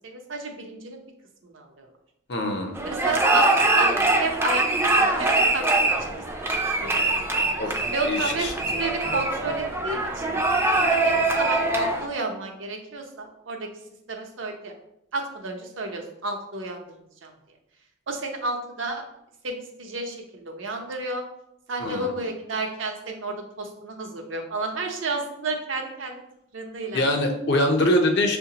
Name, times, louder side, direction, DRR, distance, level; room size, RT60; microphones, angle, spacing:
voice 1, 0.0-1.0 1.4-1.9 2.8-3.9 4.2-7.4 7.9-10.3 10.9-13.7 14.1-14.7 15.1-17.3 18.1-19.0 19.4-21.2 21.7-26.2 26.5-27.1, right 3 dB, 75° right, 3 dB, 0.7 m, -32 dB
voice 2, 2.3-2.8 7.6-8.5 21.8-22.1 26.9-28.4, left 1 dB, 60° left, 3 dB, 0.7 m, -23 dB
sound 1, 2.7-12.1, right 2 dB, 15° right, 0.4 m, -23 dB
6.4 x 2.2 x 2.8 m, 0.80 s
head